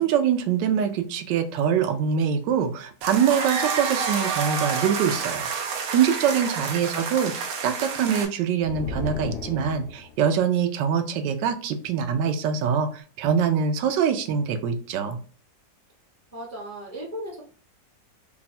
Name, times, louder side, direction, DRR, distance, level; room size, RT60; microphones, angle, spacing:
voice 1, 0.0-15.2, right 7 dB, 90° right, 8 dB, 1.3 m, -24 dB
sound 1, 3.0-8.3, right 5 dB, 70° right, 1.1 m, -29 dB
voice 2, 6.3-6.7 16.3-17.4, right 1 dB, 20° left, -4 dB, 0.4 m, -37 dB
sound 2, 8.6-10.2, left 4 dB, 75° left, 1.2 m, -34 dB
3.2 x 2.3 x 4.1 m, 0.41 s
omnidirectional pair, 1.9 m